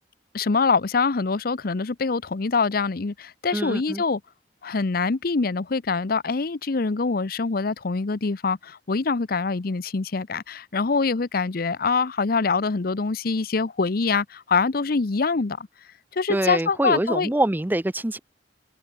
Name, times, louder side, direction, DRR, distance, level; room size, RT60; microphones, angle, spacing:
voice 1, 0.3-4.2 4.6-15.7 16.1-17.3, left 4 dB, 60° left, 0.7 m, -24 dB
voice 2, 3.5-4.0 16.3-18.2, right 1 dB, 10° right, 0.5 m, -25 dB
head